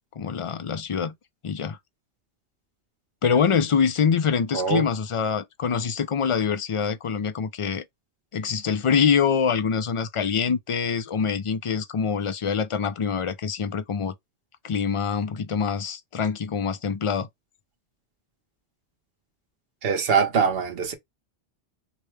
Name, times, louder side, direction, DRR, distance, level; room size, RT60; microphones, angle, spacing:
voice 1, 0.2-1.1 1.4-1.8 3.2-7.8 8.3-14.1 14.6-17.3, left 6 dB, 55° left, 0.3 m, -25 dB
voice 2, 4.5-4.8 19.8-20.9, right 6 dB, 60° right, 1.1 m, -23 dB
4.8 x 2.2 x 3.1 m
omnidirectional pair, 1.1 m